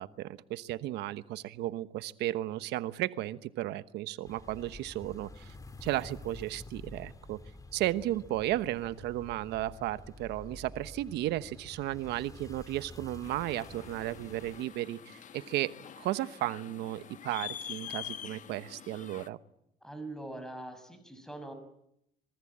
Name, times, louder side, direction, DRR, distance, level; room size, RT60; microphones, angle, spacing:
voice 1, 0.0-5.5 5.8-7.4 7.7-19.4, right 14 dB, 80° right, 13 dB, 1.1 m, -34 dB
sound 1, 4.2-14.7, left 2 dB, 20° left, 2.1 m, -49 dB
sound 2, 13.2-19.3, left 10 dB, 50° left, 1.3 m, -45 dB
voice 2, 19.8-21.5, right 2 dB, 5° left, 9 dB, 6.2 m, -42 dB
26.0 x 23.5 x 8.8 m, 0.78 s
cardioid pair, 110°, 17 cm